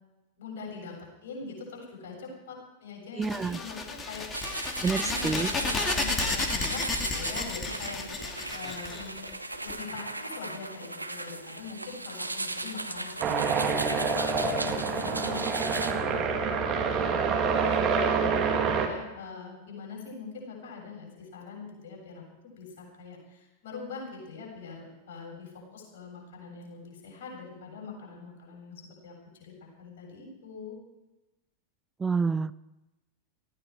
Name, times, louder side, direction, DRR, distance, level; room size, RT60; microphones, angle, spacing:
voice 1, 0.4-0.9 1.2-4.5 4.8-8.2 8.5-9.2 9.6-30.8, left 4 dB, 55° left, 0 dB, 7.5 m, -43 dB
sound 1, 3.2-9.7, left 3 dB, 20° left, 2.2 m, -33 dB
voice 2, 3.2-3.6 4.8-5.5 32.0-32.5, right 5 dB, 15° right, 16 dB, 0.6 m, -28 dB
sound 2, 4.3-15.9, right 2 dB, 85° right, 1.0 m, -36 dB
sound 3, 13.2-18.9, right 5 dB, 30° right, 2.4 m, -27 dB
19.0 x 15.0 x 4.8 m, 1.0 s
figure-of-eight pair, 90°, 0 cm